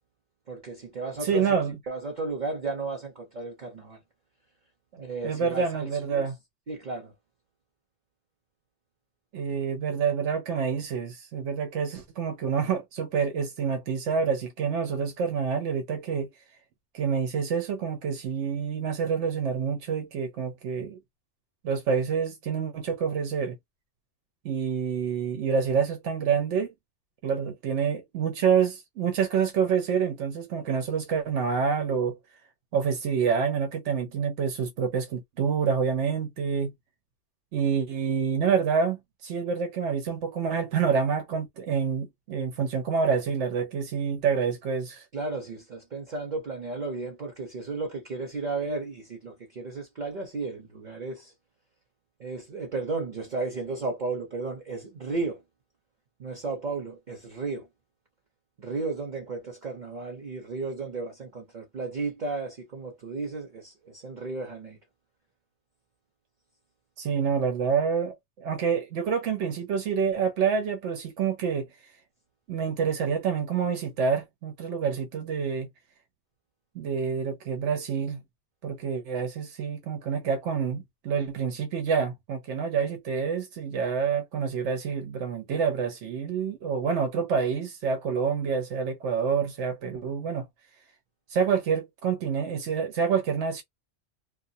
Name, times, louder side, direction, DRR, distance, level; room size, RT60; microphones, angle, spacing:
voice 1, 0.5-1.6 1.9-4.0 5.0-6.3 6.7-7.1 45.1-51.3 52.2-55.4 56.2-57.7 58.6-64.8, right 3 dB, 45° right, 0.8 m, -34 dB
voice 2, 1.2-1.8 4.9-6.3 9.3-16.3 16.9-21.0 21.6-23.6 24.4-26.7 27.2-32.2 32.7-36.7 37.5-45.0 67.0-71.7 72.5-75.7 76.7-78.2 78.6-90.5 91.3-93.6, right 6 dB, 85° right, 1.0 m, -27 dB
2.4 x 2.2 x 2.6 m
omnidirectional pair, 1.2 m